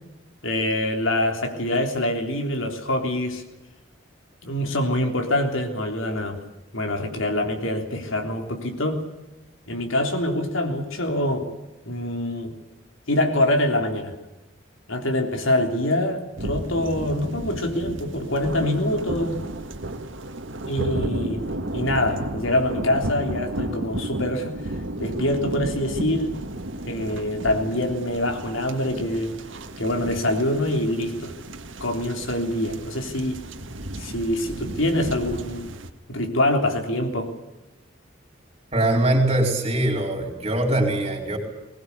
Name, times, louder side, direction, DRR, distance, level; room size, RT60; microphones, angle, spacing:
voice 1, 0.4-3.4 4.4-6.4 6.7-9.0 9.7-11.5 11.9-12.5 13.1-14.1 14.9-19.4 20.7-21.4 21.7-24.7 25.0-26.4 26.9-29.3 29.8-31.3 31.8-33.4 34.0-35.7 36.1-37.3, left 1 dB, 80° left, 4 dB, 3.5 m, -25 dB
sound 1, 16.4-35.9, right 1 dB, 70° right, 1.8 m, -33 dB
voice 2, 38.7-41.4, right 1 dB, 30° right, 2 dB, 4.7 m, -22 dB
21.0 x 20.5 x 8.5 m, 1.0 s
head